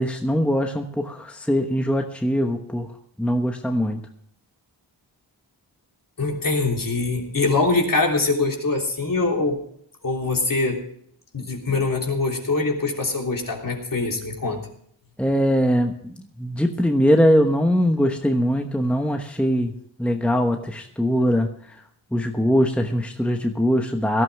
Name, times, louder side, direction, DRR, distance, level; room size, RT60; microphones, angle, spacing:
voice 1, 0.0-2.9 3.2-4.0 15.2-19.7 20.0-21.8 22.1-24.2, equal, 5° left, 4 dB, 1.1 m, -21 dB
voice 2, 6.2-9.6 10.0-10.8 11.3-14.6, left 3 dB, 45° left, 1 dB, 3.3 m, -23 dB
18.0 x 12.5 x 3.5 m, 0.66 s
wide cardioid pair, 90°, 46 cm